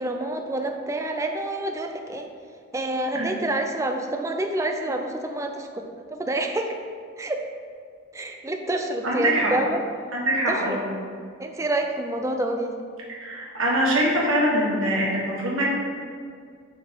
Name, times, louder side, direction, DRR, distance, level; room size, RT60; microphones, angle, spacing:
voice 1, 0.0-2.3 2.7-6.8 7.2-7.4 8.1-9.8 10.5-10.8 11.4-12.7, right 1 dB, 15° right, 4 dB, 0.4 m, -28 dB
voice 2, 9.0-9.5 10.1-10.9 13.2-15.6, right 1 dB, 75° right, -4 dB, 1.6 m, -23 dB
5.5 x 4.5 x 5.3 m, 2.1 s
head